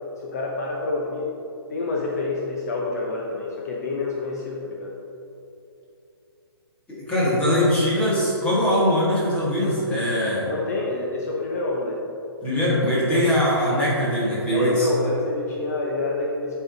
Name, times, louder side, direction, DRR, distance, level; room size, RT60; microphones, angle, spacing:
voice 1, 0.1-1.3 1.7-4.9 10.4-12.0 13.1-13.3 14.5-16.5, left 2 dB, 40° left, -2 dB, 0.7 m, -28 dB
voice 2, 6.9-10.5 12.4-14.9, equal, 10° left, -8 dB, 1.5 m, -21 dB
8.7 x 4.6 x 4.0 m, 2.9 s
hypercardioid pair, 170°, 13 cm